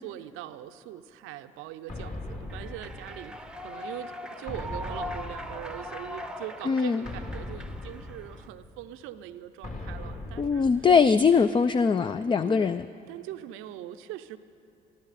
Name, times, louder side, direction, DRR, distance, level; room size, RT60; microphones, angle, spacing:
voice 1, 0.0-10.8 12.4-12.8 13.1-14.4, right 12 dB, 80° right, 11 dB, 0.6 m, -42 dB
sound 1, 1.9-3.7 4.5-6.2 7.0-8.8 9.6-11.4, left 2 dB, 40° left, 2.5 m, -40 dB
Human voice / Clapping / Cheering, 2.5-8.5, equal, 5° right, 0.8 m, -40 dB
voice 2, 6.7-7.0 10.4-12.9, left 5 dB, 25° left, 12 dB, 0.4 m, -22 dB
21.5 x 13.5 x 4.2 m, 3.0 s
supercardioid pair, 60°, 21 cm